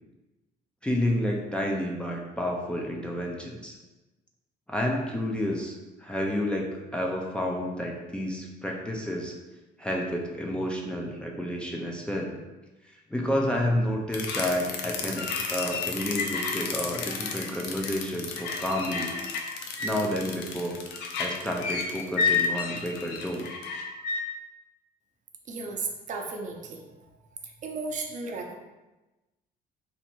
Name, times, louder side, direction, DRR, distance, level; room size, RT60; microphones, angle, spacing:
voice 1, 0.8-3.8 4.7-9.3 9.8-12.4 13.1-19.1 19.8-20.8 21.2-23.5, left 1 dB, 5° left, -1 dB, 0.5 m, -30 dB
sound 1, 14.1-24.2, left 5 dB, 85° left, 0.6 m, -31 dB
voice 2, 25.5-26.8 27.6-28.6, right 3 dB, 45° right, 2 dB, 0.6 m, -34 dB
3.1 x 2.7 x 4.4 m, 1.1 s
cardioid pair, 110°, 17 cm